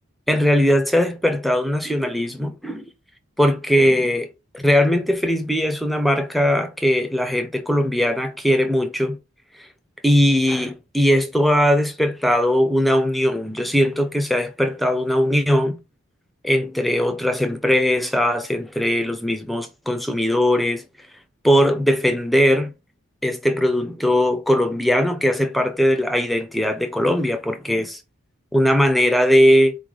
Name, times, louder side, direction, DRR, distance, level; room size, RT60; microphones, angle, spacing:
voice 1, 0.3-2.9 3.4-9.2 9.6-9.7 10.0-15.8 16.4-20.8 21.4-22.7 23.2-28.0 28.5-29.8, equal, ahead, 0.5 m, -19 dB
4.1 x 3.2 x 3.8 m
head